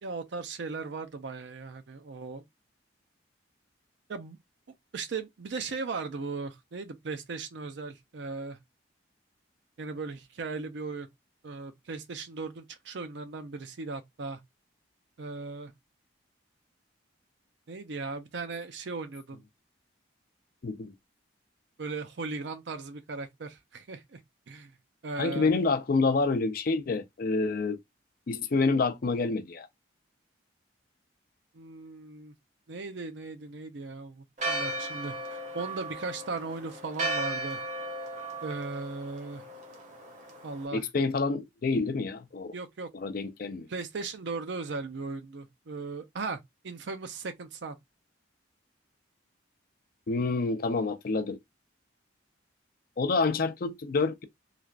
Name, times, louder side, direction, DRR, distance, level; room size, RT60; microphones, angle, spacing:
voice 1, 0.0-2.4 4.1-4.4 4.9-8.6 9.8-11.1 11.4-14.4 15.2-15.7 17.7-19.4 21.8-24.2 24.5-24.8 25.0-25.5 31.5-32.3 32.7-37.6 38.4-39.4 40.4-40.8 42.5-43.2 43.7-47.8, right 3 dB, 65° right, 0.5 m, -37 dB
voice 2, 20.6-20.9 25.2-27.8 28.3-29.7 40.7-42.5 42.9-43.7 50.1-51.4 53.0-54.2, left 3 dB, 50° left, 0.4 m, -28 dB
Church bell, 34.4-40.7, right 2 dB, 40° right, 0.8 m, -36 dB
3.2 x 2.4 x 2.4 m
head